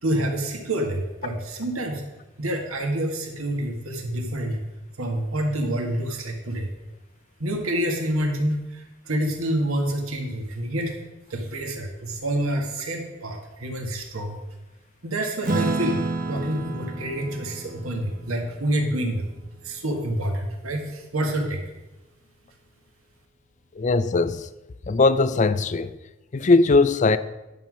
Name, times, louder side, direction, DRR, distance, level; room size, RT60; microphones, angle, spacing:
voice 1, 0.0-2.0 2.4-4.6 5.0-6.7 7.4-10.9 11.3-14.4 15.0-16.0 16.3-19.3 19.6-21.6, right 1 dB, 90° right, 1.8 m, -27 dB
Acoustic guitar / Strum, 15.4-20.3, right 2 dB, 40° right, 1.3 m, -31 dB
voice 2, 23.8-24.5 24.9-25.9 26.3-27.2, left 3 dB, 35° left, 0.4 m, -19 dB
10.5 x 5.7 x 6.3 m
head